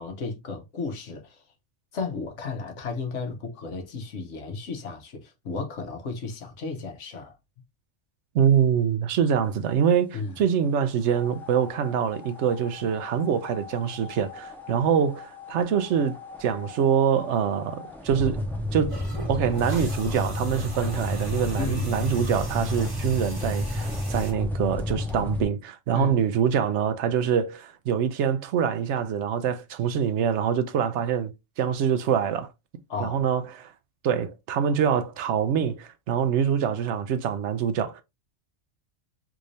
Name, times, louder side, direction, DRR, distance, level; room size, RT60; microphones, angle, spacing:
voice 1, 0.0-1.4 1.9-7.3 10.1-10.4 21.6-21.9 25.9-26.2 32.9-33.2, left 4 dB, 75° left, 1.3 m, -34 dB
voice 2, 8.3-19.0 19.3-32.5 33.0-33.7 34.0-38.0, right 8 dB, 75° right, 0.9 m, -25 dB
sound 1, 11.0-25.4, left 1 dB, ahead, 0.7 m, -32 dB
sound 2, 18.9-24.3, right 2 dB, 30° right, 1.0 m, -42 dB
3.6 x 2.6 x 3.1 m
omnidirectional pair, 1.2 m